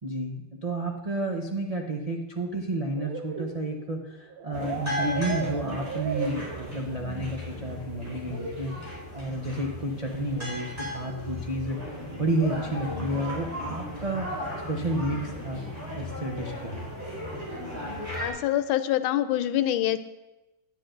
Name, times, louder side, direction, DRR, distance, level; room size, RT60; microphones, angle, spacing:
voice 1, 0.0-8.7 9.1-14.4 14.7-15.6 15.9-16.9, right 1 dB, 60° right, 0 dB, 0.3 m, -31 dB
sound 1, 3.0-7.1, right 6 dB, 80° right, 1.5 m, -36 dB
sound 2, 4.5-18.3, left 1 dB, 10° right, 4.1 m, -36 dB
voice 2, 18.2-20.0, left 12 dB, 90° left, 12 dB, 1.4 m, -25 dB
10.5 x 9.9 x 3.9 m, 1.0 s
omnidirectional pair, 2.1 m